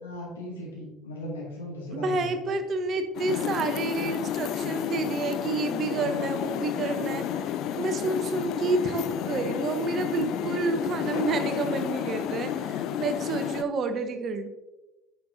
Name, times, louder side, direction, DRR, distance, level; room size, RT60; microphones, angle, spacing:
voice 1, 0.0-2.4, left 1 dB, 80° left, -3 dB, 2.2 m, -37 dB
voice 2, 1.9-7.4 7.8-14.5, right 3 dB, 45° right, 9 dB, 0.9 m, -29 dB
sound 1, 3.1-13.6, left 9 dB, 55° left, 0.4 m, -31 dB
8.6 x 6.5 x 2.7 m, 1.0 s
figure-of-eight pair, 60°, 0 cm